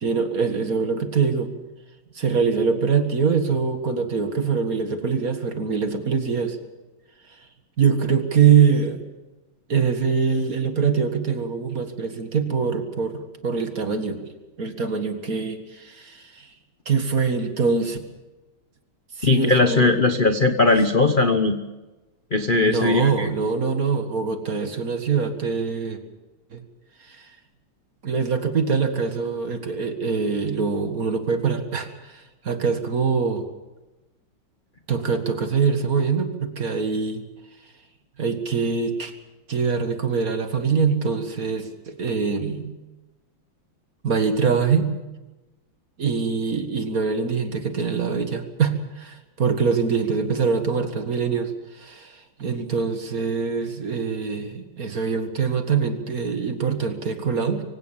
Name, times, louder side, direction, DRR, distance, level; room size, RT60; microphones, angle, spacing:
voice 1, 0.0-1.5 2.2-6.6 7.8-9.0 9.7-14.2 14.6-16.5 16.9-18.0 19.2-20.0 22.7-26.0 26.5-26.6 27.1-27.3 28.0-33.5 34.9-37.2 38.2-39.1 39.5-42.7 44.0-44.9 46.0-57.6, right 5 dB, 45° right, 7 dB, 2.0 m, -23 dB
voice 2, 19.2-21.6 22.3-23.3, left 3 dB, 40° left, 7 dB, 0.8 m, -19 dB
24.5 x 16.5 x 7.4 m, 1.1 s
omnidirectional pair, 2.3 m